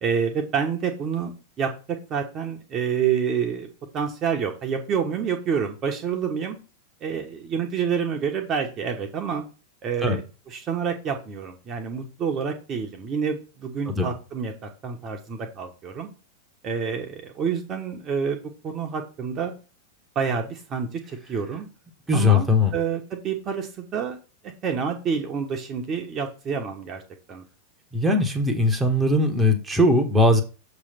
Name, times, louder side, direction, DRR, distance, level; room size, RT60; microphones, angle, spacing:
voice 1, 0.0-3.7 3.9-6.6 7.0-9.4 9.8-16.1 16.6-18.4 18.6-19.5 20.1-21.7 22.1-24.2 24.4-27.0 27.3-27.4, right 6 dB, 30° right, 3 dB, 1.2 m, -28 dB
voice 2, 22.1-22.7 27.9-30.4, left 2 dB, 10° right, 3 dB, 1.3 m, -20 dB
6.8 x 3.3 x 5.8 m, 0.33 s
figure-of-eight pair, 90°, 0 cm